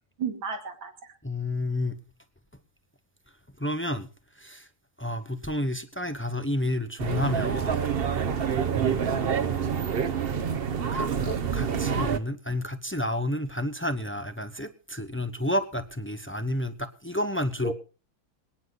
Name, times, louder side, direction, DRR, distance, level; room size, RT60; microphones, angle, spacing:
voice 1, 0.2-1.1 8.6-9.0 17.6-17.7, right 5 dB, 80° right, 3.1 m, -33 dB
voice 2, 1.2-2.0 3.6-4.1 4.4-4.7 5.0-7.9 8.7-9.3 10.9-17.7, left 1 dB, 20° left, 0.3 m, -30 dB
sound 1, 7.0-12.2, right 7 dB, 50° right, 0.7 m, -27 dB
26.0 x 9.6 x 4.1 m
omnidirectional pair, 2.2 m